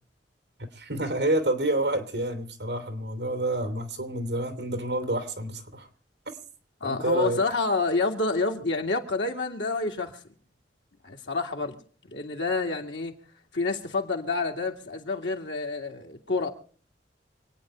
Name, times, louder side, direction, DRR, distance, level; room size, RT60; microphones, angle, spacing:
voice 1, 0.7-5.9 6.8-7.4, right 1 dB, 65° right, 2.8 m, -28 dB
voice 2, 6.8-10.2 11.0-11.8 12.0-13.1 13.5-16.5, left 3 dB, 85° left, 2.3 m, -28 dB
27.0 x 9.1 x 4.4 m
head